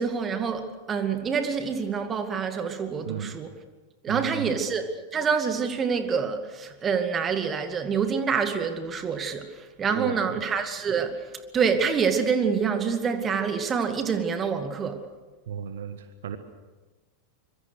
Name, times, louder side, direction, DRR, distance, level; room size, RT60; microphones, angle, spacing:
voice 1, 0.0-3.5 4.0-9.5 9.8-11.3 11.5-15.0, right 6 dB, 25° right, 2.3 m, -26 dB
voice 2, 4.1-4.7 9.9-10.4 15.5-16.4, right 9 dB, 60° right, 1.5 m, -34 dB
25.0 x 23.5 x 6.5 m
figure-of-eight pair, 90°, 0 cm